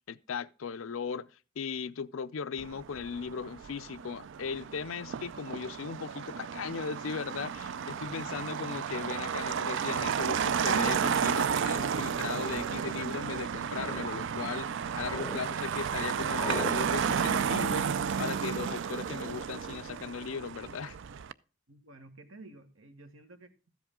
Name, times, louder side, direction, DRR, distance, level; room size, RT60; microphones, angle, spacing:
voice 1, 0.1-1.3 1.6-14.7 15.0-21.0, left 6 dB, 75° left, 0.5 m, -37 dB
Motor vehicle (road), 2.6-21.3, right 7 dB, 65° right, 0.4 m, -32 dB
sound 1, 12.3-12.7 13.3-14.1 14.5-15.4 15.7-16.8, left 2 dB, 10° left, 0.6 m, -43 dB
voice 2, 21.7-23.8, right 2 dB, 80° right, 1.6 m, -52 dB
13.5 x 7.8 x 3.7 m
head